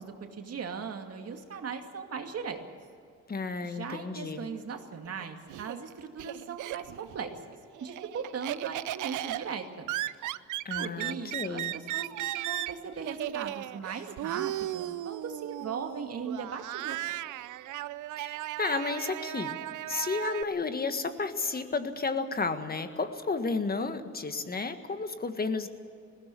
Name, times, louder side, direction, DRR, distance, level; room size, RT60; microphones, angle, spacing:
voice 1, 0.0-2.6 3.6-7.3 7.8-9.9 10.7-17.0, right 6 dB, 55° right, 5 dB, 2.4 m, -38 dB
voice 2, 3.3-4.5 10.6-11.7 18.2-19.6 19.9-25.7, left 4 dB, 30° left, 9 dB, 1.7 m, -32 dB
Laughter, 5.0-7.2 7.5-20.4, right 15 dB, 80° right, 0.6 m, -36 dB
20.0 x 16.5 x 8.5 m, 2.4 s
cardioid pair, 90°, 30 cm